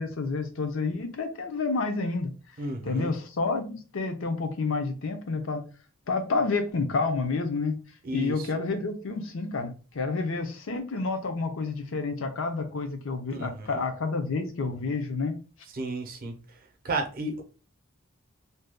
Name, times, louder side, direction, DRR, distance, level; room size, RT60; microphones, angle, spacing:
voice 1, 0.0-2.3 2.8-5.6 6.1-7.8 8.1-15.4, left 3 dB, 70° left, 0.6 m, -29 dB
voice 2, 2.6-3.1 8.0-8.5 13.4-13.8 15.7-16.4 16.8-17.4, right 2 dB, 45° right, 0.6 m, -32 dB
2.7 x 2.2 x 3.5 m
head